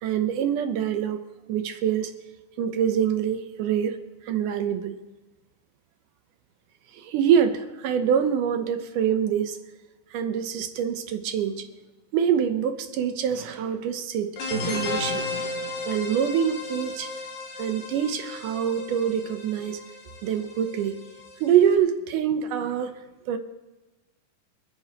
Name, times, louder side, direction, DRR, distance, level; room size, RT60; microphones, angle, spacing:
voice 1, 0.0-1.2 1.5-2.1 2.6-4.0 4.3-5.0 6.9-9.6 10.1-11.7 12.1-15.2 15.9-17.1 17.6-19.8 20.2-21.0 21.4-22.9 23.3-23.4, right 8 dB, 75° right, 8 dB, 2.2 m, -25 dB
sound 1, 14.4-21.7, left 3 dB, 75° left, 3.2 m, -34 dB
29.0 x 9.8 x 2.9 m, 1.1 s
omnidirectional pair, 4.1 m